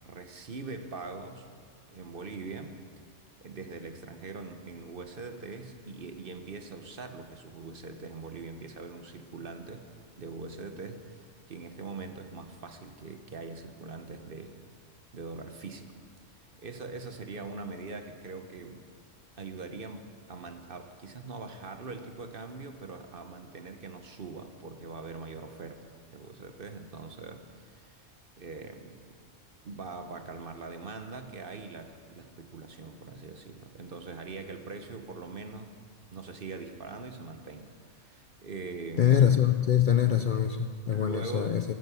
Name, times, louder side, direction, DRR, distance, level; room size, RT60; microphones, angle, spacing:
voice 1, 0.0-1.5 1.9-2.8 3.4-14.6 15.1-16.0 16.3-18.9 19.4-28.0 28.4-29.2 29.6-35.7 36.1-39.3 40.9-41.6, right 3 dB, 50° right, 7 dB, 1.1 m, -42 dB
voice 2, 39.0-41.6, left 9 dB, 60° left, 8 dB, 0.6 m, -24 dB
12.5 x 10.5 x 8.2 m, 2.2 s
omnidirectional pair, 1.3 m